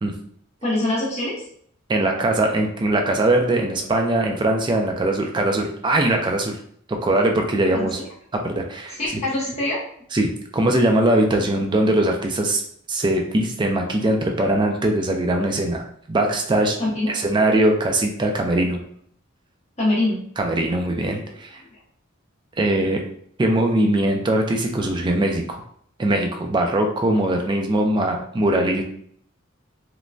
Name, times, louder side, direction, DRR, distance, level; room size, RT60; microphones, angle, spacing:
voice 1, 0.6-1.3 7.1-7.2 7.7-8.0 9.0-9.8 11.4-11.5 16.8-17.1 19.8-20.2, left 1 dB, 35° left, -7 dB, 0.8 m, -23 dB
voice 2, 1.9-6.6 6.9-8.0 8.3-9.0 10.1-12.6 12.9-16.8 17.1-18.8 20.4-21.6 22.6-23.0 23.4-25.6 26.0-28.8, right 1 dB, 25° right, 2 dB, 0.3 m, -21 dB
3.0 x 2.1 x 2.5 m, 0.63 s
head